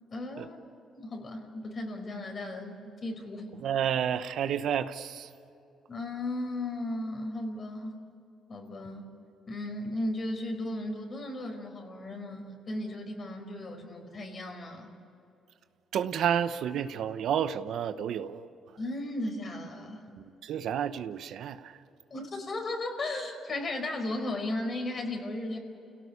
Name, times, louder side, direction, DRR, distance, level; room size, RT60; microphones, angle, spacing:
voice 1, 0.1-0.6 0.9-3.5 5.9-8.0 8.5-9.1 9.5-14.9 18.8-20.1 22.1-25.6, left 1 dB, 45° left, 4 dB, 5.0 m, -35 dB
voice 2, 3.6-5.3 15.9-18.5 20.2-21.8, right 9 dB, 75° right, 11 dB, 1.0 m, -30 dB
29.5 x 17.5 x 8.5 m, 2.8 s
cardioid pair, 90°, 0 cm